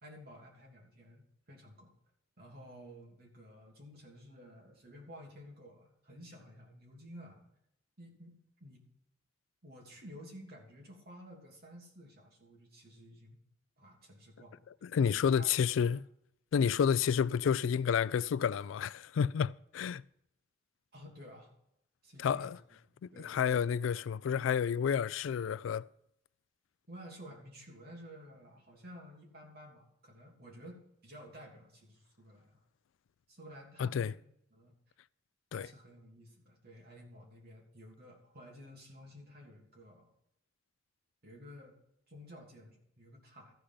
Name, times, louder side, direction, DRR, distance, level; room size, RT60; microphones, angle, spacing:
voice 1, 0.0-1.9 2.4-7.5 8.0-8.8 9.6-13.4 13.8-14.6 15.1-15.6 20.9-21.5 22.0-22.6 22.9-23.6 26.9-32.6 33.3-34.2 34.5-34.7 35.5-40.1 41.2-41.7 42.1-43.5, equal, 55° right, 3.0 m, -53 dB
voice 2, 14.8-16.0 16.5-20.0 22.2-22.6 23.2-25.9 33.8-34.1 35.5-35.7, left 7 dB, 80° left, 0.3 m, -30 dB
14.0 x 5.0 x 5.7 m
head